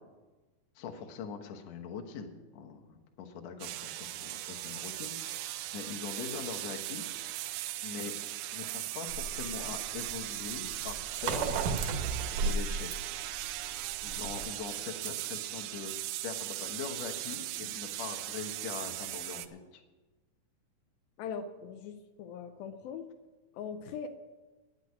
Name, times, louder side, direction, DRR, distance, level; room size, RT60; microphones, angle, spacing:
voice 1, 0.8-7.0 7.8-8.1 8.5-11.6 12.4-12.9 14.0-15.9 16.2-19.8, left 6 dB, 60° left, 3 dB, 1.9 m, -42 dB
sound 1, 3.6-19.5, right 15 dB, 90° right, 2.5 m, -38 dB
sound 2, 9.1-14.5, right 4 dB, 65° right, 2.4 m, -34 dB
voice 2, 21.2-23.1 23.5-24.1, left 6 dB, 80° left, 6 dB, 2.4 m, -41 dB
9.9 x 8.2 x 9.5 m, 1.2 s
omnidirectional pair, 4.3 m